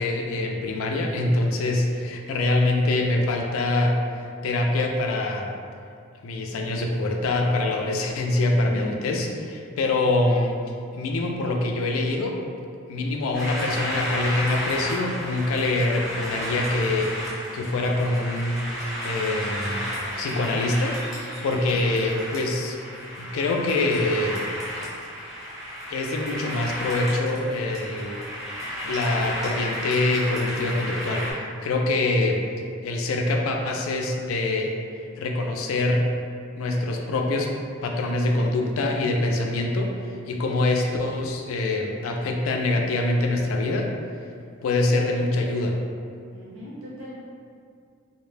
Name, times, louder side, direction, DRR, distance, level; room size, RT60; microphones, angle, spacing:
voice 1, 0.0-4.0 4.4-5.5 6.2-10.6 10.9-12.4 12.9-18.6 19.0-19.8 20.2-21.0 21.4-22.8 23.2-24.4 25.9-28.2 28.8-32.4 32.8-34.7 35.2-36.0 36.6-37.5 37.8-39.9 40.3-43.9 44.6-45.8, left 2 dB, 80° left, 1 dB, 0.3 m, -24 dB
voice 2, 8.5-9.0 46.3-47.2, left 1 dB, 75° right, -7 dB, 0.7 m, -38 dB
sound 1, 13.3-31.3, equal, ahead, 0.6 m, -33 dB
2.1 x 2.0 x 3.2 m, 2.3 s
head